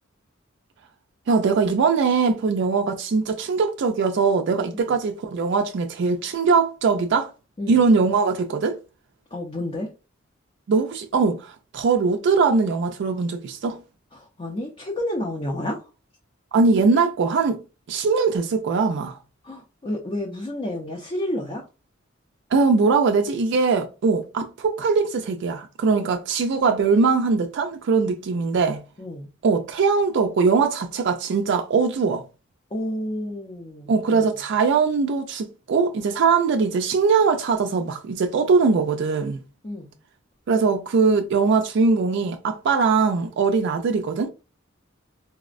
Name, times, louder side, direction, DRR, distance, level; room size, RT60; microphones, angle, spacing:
voice 1, 1.3-7.3 7.7-8.8 10.7-13.8 16.5-17.6 17.9-19.2 22.5-28.8 29.4-32.2 33.9-39.4 40.5-44.3, right 4 dB, 60° right, 0.4 m, -21 dB
voice 2, 9.3-9.9 14.1-15.8 19.4-21.6 29.0-29.3 32.7-34.3 39.6-39.9, left 1 dB, 30° left, 0.5 m, -30 dB
4.1 x 2.0 x 2.4 m
head